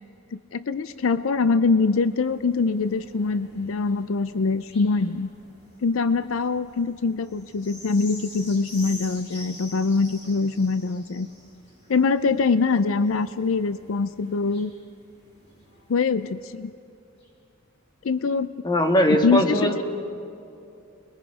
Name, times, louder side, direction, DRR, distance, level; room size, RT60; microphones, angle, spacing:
voice 1, 0.3-5.3 5.8-11.3 11.9-14.7 15.9-16.7 18.0-18.5 19.1-19.8, left 4 dB, 70° left, 13 dB, 0.5 m, -23 dB
sound 1, 0.7-16.6 17.2-17.3, left 1 dB, 55° left, 6.6 m, -47 dB
voice 2, 18.6-19.8, equal, 20° left, 4 dB, 1.7 m, -20 dB
29.5 x 22.0 x 4.9 m, 2.6 s
head